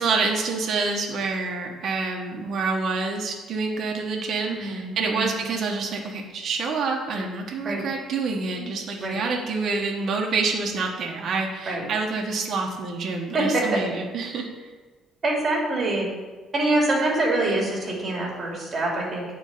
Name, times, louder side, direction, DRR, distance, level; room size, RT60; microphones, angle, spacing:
voice 1, 0.0-14.7, right 4 dB, 45° right, 0 dB, 1.4 m, -27 dB
voice 2, 4.5-5.3 7.6-7.8 9.0-9.2 11.7-11.8 13.3-13.8 15.2-16.1 16.5-19.2, right 2 dB, 25° right, -2 dB, 2.6 m, -25 dB
9.1 x 4.6 x 6.9 m, 1.3 s
cardioid pair, 155°, 0 cm